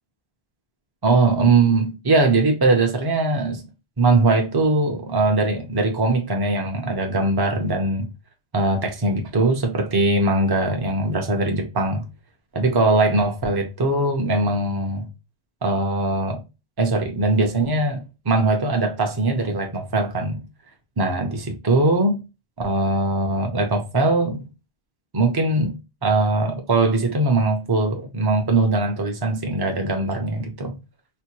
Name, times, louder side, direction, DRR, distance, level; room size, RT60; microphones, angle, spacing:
voice 1, 1.0-3.6 4.0-8.1 8.5-12.0 12.5-15.1 15.6-16.4 16.8-20.4 21.0-22.2 22.6-24.5 25.1-30.8, right 2 dB, 25° right, 0.6 m, -21 dB
4.3 x 2.1 x 2.9 m
omnidirectional pair, 1.1 m